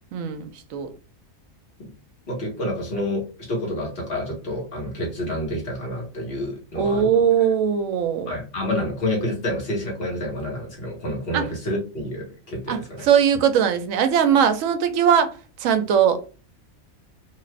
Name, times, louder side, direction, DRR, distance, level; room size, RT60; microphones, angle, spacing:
voice 1, 0.1-0.9 6.8-8.3 11.3-11.5 12.7-15.3 15.6-16.2, right 8 dB, 70° right, 0.9 m, -20 dB
voice 2, 2.3-7.2 8.3-13.1, left 1 dB, 45° left, 1.4 m, -28 dB
2.8 x 2.4 x 3.2 m
omnidirectional pair, 1.5 m